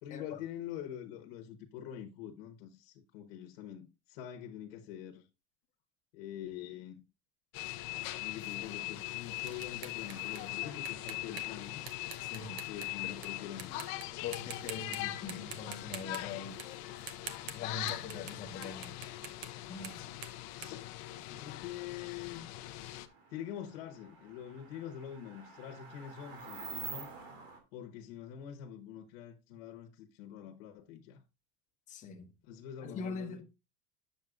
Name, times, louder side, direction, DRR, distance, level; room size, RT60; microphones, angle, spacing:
voice 1, 0.0-5.3 6.1-7.0 8.2-11.8 12.6-13.8 20.6-20.8 21.3-22.5 23.3-27.1 27.7-31.2 32.4-33.4, left 10 dB, 60° left, 1.1 m, -45 dB
sound 1, 7.5-23.1, left 17 dB, 40° left, 0.6 m, -41 dB
sound 2, 8.4-13.3 13.6-14.0 14.3-15.0 15.3-18.4 18.6-21.6, right 7 dB, 45° right, 0.9 m, -47 dB
sound 3, 10.1-27.6, right 4 dB, 70° right, 2.3 m, -53 dB
voice 2, 12.2-12.6 13.0-13.1 14.2-16.6 17.5-19.0 19.7-20.0 31.9-32.3 32.8-33.4, left 5 dB, 25° left, 1.0 m, -42 dB
9.1 x 7.1 x 2.4 m
cardioid pair, 175°, 32 cm